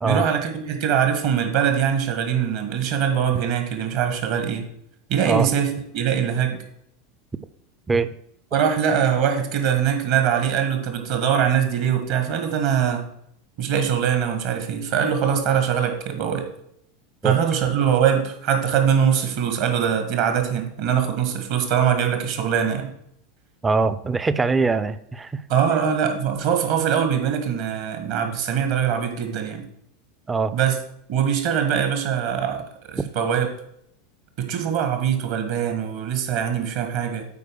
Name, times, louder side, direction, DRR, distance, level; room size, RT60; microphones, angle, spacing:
voice 1, 0.0-4.6 5.1-6.6 8.5-13.1 13.6-16.5 17.2-22.9 25.5-29.6 30.5-30.8 31.1-33.5 34.4-37.3, right 8 dB, 50° right, 6 dB, 1.6 m, -22 dB
voice 2, 23.6-25.3 30.3-30.5, right 4 dB, 15° right, 14 dB, 0.5 m, -22 dB
8.4 x 4.8 x 6.4 m, 0.72 s
figure-of-eight pair, 80°, 0 cm